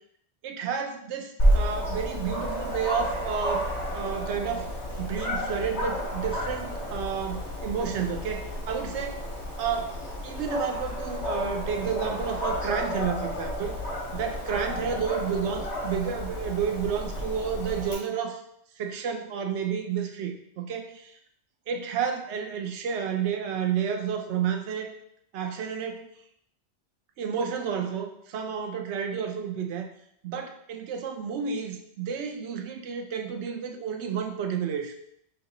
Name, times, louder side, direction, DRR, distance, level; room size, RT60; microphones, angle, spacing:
voice 1, 0.4-3.7 3.9-4.7 5.0-9.3 9.6-13.7 14.1-18.4 18.8-21.1 21.7-24.9 25.3-26.1 27.2-29.9 30.2-34.9, right 7 dB, 85° right, 5 dB, 0.9 m, -31 dB
Dog, 1.4-17.9, equal, 70° left, 1.6 m, -31 dB
3.5 x 2.9 x 3.8 m, 0.72 s
omnidirectional pair, 1.1 m